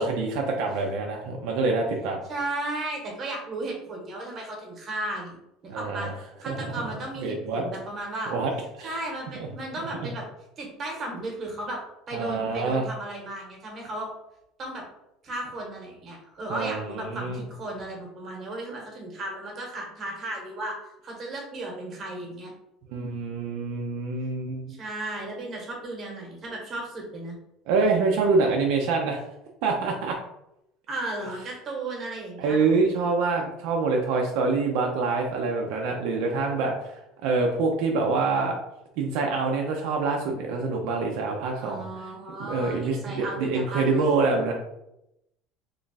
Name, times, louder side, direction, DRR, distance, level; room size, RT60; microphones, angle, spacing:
voice 1, 0.0-2.2 5.7-6.1 6.5-6.7 7.2-7.6 8.3-8.5 8.8-9.0 10.0-10.1 12.1-12.9 16.5-17.4 22.9-24.8 27.7-29.2 29.6-30.2 32.4-37.0 37.2-38.6 39.0-41.9 42.4-44.5, right 3 dB, 70° right, 1 dB, 0.5 m, -26 dB
voice 2, 2.3-5.4 5.6-6.1 6.4-8.3 8.8-10.3 10.6-11.8 12.1-14.1 14.6-14.9 15.2-20.8 21.0-22.5 24.7-27.4 30.9-32.7 41.6-44.1, right 2 dB, 30° right, -1 dB, 1.1 m, -35 dB
3.1 x 2.3 x 3.9 m, 0.85 s
cardioid pair, 150°, 0 cm